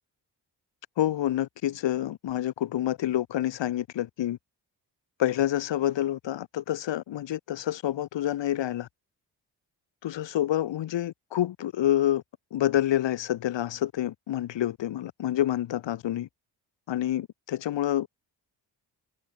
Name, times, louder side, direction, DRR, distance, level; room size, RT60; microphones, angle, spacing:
voice 1, 1.0-4.4 5.2-8.9 10.0-12.2 12.5-16.3 16.9-18.1, left 12 dB, 85° left, 4.4 m, -28 dB
cardioid pair, 65°, 43 cm